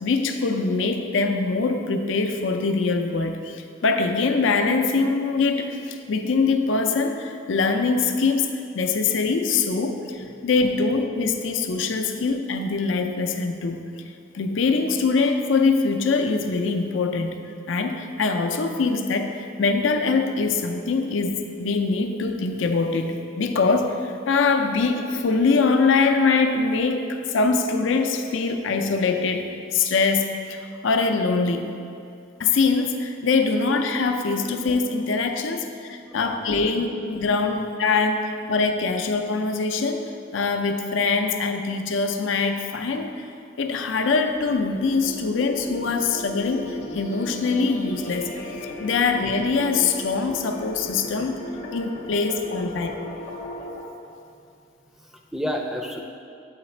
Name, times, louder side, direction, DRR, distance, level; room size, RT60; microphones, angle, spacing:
voice 1, 0.0-8.5 8.7-13.8 14.3-17.4 17.7-31.7 32.4-43.3 43.6-48.3 48.8-51.4 51.7-53.0, left 4 dB, 70° left, 5 dB, 0.5 m, -23 dB
voice 2, 36.0-36.7 55.0-56.0, equal, ahead, 1 dB, 0.3 m, -32 dB
sound 1, 44.3-53.9, left 1 dB, 35° left, 0.7 m, -37 dB
7.9 x 4.0 x 4.3 m, 2.5 s
head